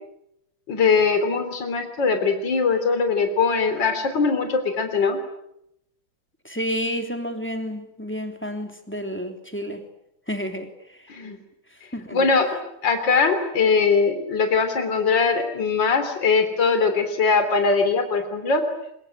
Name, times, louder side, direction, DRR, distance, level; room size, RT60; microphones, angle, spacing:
voice 1, 0.7-5.2 11.1-11.4 12.1-12.5 12.8-18.6, left 5 dB, 55° left, 7 dB, 4.0 m, -21 dB
voice 2, 6.4-9.8 10.3-11.0 11.9-12.3, equal, 5° left, 5 dB, 3.2 m, -30 dB
25.0 x 22.0 x 10.0 m, 0.79 s
omnidirectional pair, 2.4 m